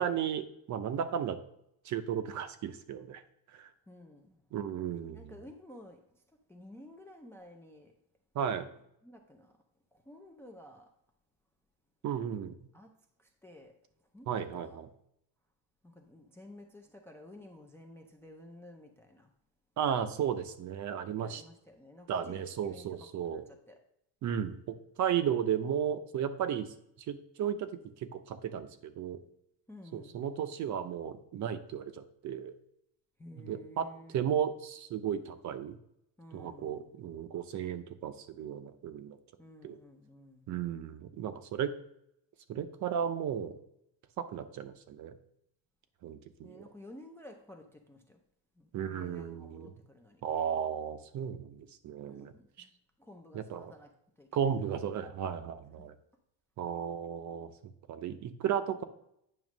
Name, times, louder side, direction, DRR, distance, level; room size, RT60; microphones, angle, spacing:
voice 1, 0.0-1.4 1.8-3.2 3.5-3.7 4.5-5.3 8.3-8.7 12.0-12.5 14.3-14.9 19.8-21.4 22.1-23.4 24.2-26.7 27.1-27.7 28.0-29.2 29.9-32.5 33.4-35.8 36.3-39.2 39.6-39.8 40.5-41.7 42.5-43.6 44.2-45.2 46.0-46.6 48.7-49.7 50.2-52.3 53.3-53.7 54.3-55.9 56.6-58.8, right 8 dB, 40° right, 11 dB, 0.6 m, -34 dB
voice 2, 3.9-4.4 5.1-6.2 6.5-7.9 9.0-9.6 9.9-10.9 12.7-12.9 13.2-13.8 14.1-14.8 15.8-19.3 21.1-22.9 23.3-23.8 29.7-30.4 33.2-34.2 36.2-36.9 39.4-40.5 46.4-48.2 48.6-50.2 52.0-52.7 53.0-53.9 54.2-54.5 55.8-55.9, left 1 dB, 5° left, 3 dB, 0.4 m, -53 dB
9.0 x 3.1 x 6.0 m, 0.76 s
cardioid pair, 155°, 44 cm